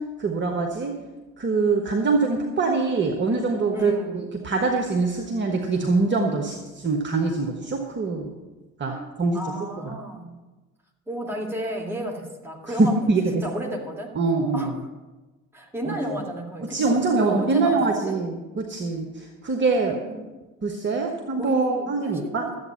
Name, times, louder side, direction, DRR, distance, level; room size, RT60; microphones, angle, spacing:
voice 1, 0.2-0.9 1.4-8.3 8.8-8.9 9.2-9.4 9.8-9.9 12.8-13.2 14.1-14.7 15.9-16.0 16.7-20.0 20.6-22.4, right 3 dB, 25° right, 2 dB, 1.3 m, -24 dB
voice 2, 3.7-4.3 8.9-9.1 9.3-10.4 11.1-13.1 13.4-14.1 14.5-14.9 15.5-18.2 19.9-20.2 21.4-22.6, right 1 dB, 5° right, 0 dB, 2.2 m, -32 dB
13.5 x 8.2 x 5.7 m, 1.2 s
figure-of-eight pair, 60°, 43 cm